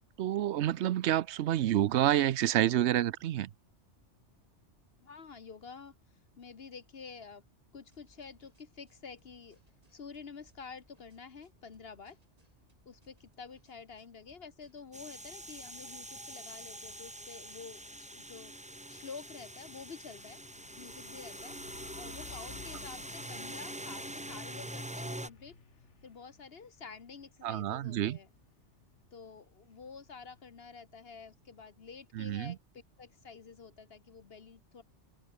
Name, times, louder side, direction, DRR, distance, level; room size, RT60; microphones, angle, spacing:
voice 1, 0.2-3.5 27.4-28.2 32.1-32.5, right 12 dB, 70° right, 0.9 m, -28 dB
voice 2, 5.0-5.9 6.4-7.4 7.7-9.6 9.9-12.2 12.8-18.5 18.9-20.4 20.8-21.6 22.0-25.6 26.0-28.3 29.1-34.8, left 5 dB, 55° left, 1.3 m, -49 dB
sound 1, 7.9-18.1, right 1 dB, 30° right, 4.9 m, -70 dB
sound 2, 14.9-25.3, right 1 dB, 5° right, 1.2 m, -44 dB
Truck, 18.2-31.9, left 6 dB, 75° left, 1.8 m, -57 dB
open air
omnidirectional pair, 1.2 m